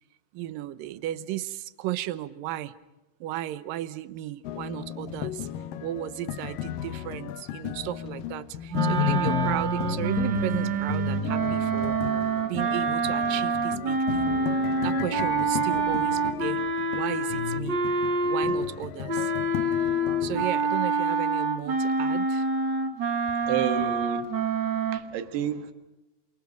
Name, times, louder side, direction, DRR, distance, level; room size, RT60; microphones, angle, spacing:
voice 1, 0.3-2.7 3.2-5.5 5.8-12.0 12.4-14.4 14.8-16.6 16.9-17.8 18.2-19.3 20.2-22.5, right 14 dB, 70° right, 2.4 m, -34 dB
sound 1, 4.4-20.5, left 10 dB, 70° left, 2.4 m, -33 dB
sound 2, 8.7-18.7 19.1-25.0, right 3 dB, 55° right, 1.3 m, -27 dB
voice 2, 23.5-24.5 24.9-25.7, right 9 dB, 90° right, 3.6 m, -30 dB
28.5 x 26.0 x 5.2 m
omnidirectional pair, 4.5 m